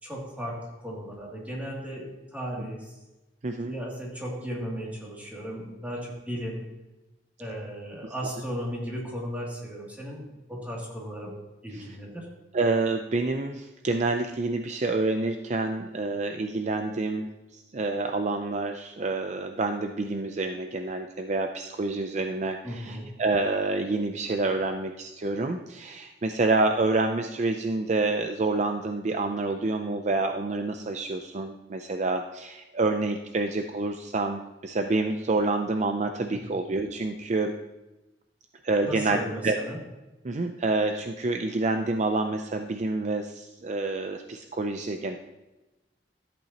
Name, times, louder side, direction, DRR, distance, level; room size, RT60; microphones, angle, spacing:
voice 1, 0.0-2.9 3.6-6.6 7.4-11.3 11.6-12.3 22.6-23.1 36.3-36.4 38.8-39.8, equal, 10° right, -4 dB, 2.6 m, -36 dB
voice 2, 12.5-37.5 38.6-39.6 40.2-45.2, right 3 dB, 40° right, 6 dB, 0.5 m, -28 dB
13.5 x 8.4 x 2.9 m, 1.0 s
head